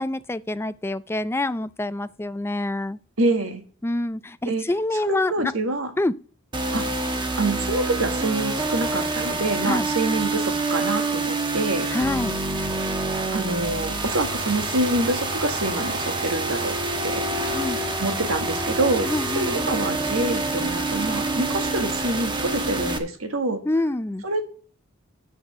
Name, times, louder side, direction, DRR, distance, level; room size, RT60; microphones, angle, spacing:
voice 1, 0.0-3.0 3.8-5.5 6.0-6.1 9.6-9.9 11.9-12.4 17.5-17.8 19.0-19.7 23.7-24.2, left 2 dB, 10° left, 0.4 m, -26 dB
voice 2, 3.2-3.6 4.4-4.6 5.0-5.9 6.7-6.8 7.4-11.9 13.3-16.7 17.0-17.3 18.0-19.1 19.3-23.6 24.2-24.5, right 2 dB, 80° right, 1.7 m, -26 dB
sound 1, 6.5-23.0, right 2 dB, 25° right, 1.1 m, -27 dB
7.9 x 6.5 x 6.7 m
head